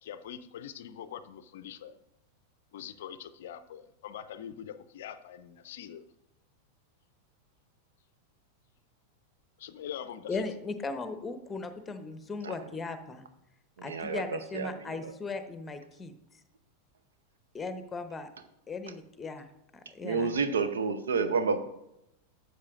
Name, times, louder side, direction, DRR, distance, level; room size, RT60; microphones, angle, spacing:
voice 1, 0.0-2.0 2.7-6.0 9.6-10.4, left 9 dB, 55° left, 13 dB, 0.5 m, -43 dB
voice 2, 10.3-13.3 13.8-16.4 17.5-18.3 18.7-20.4, left 3 dB, 15° left, 9 dB, 0.9 m, -38 dB
voice 3, 13.8-14.7 15.0-15.1 20.0-21.6, right 4 dB, 65° right, 12 dB, 0.7 m, -29 dB
13.0 x 7.7 x 2.5 m, 0.84 s
figure-of-eight pair, 90°, 0 cm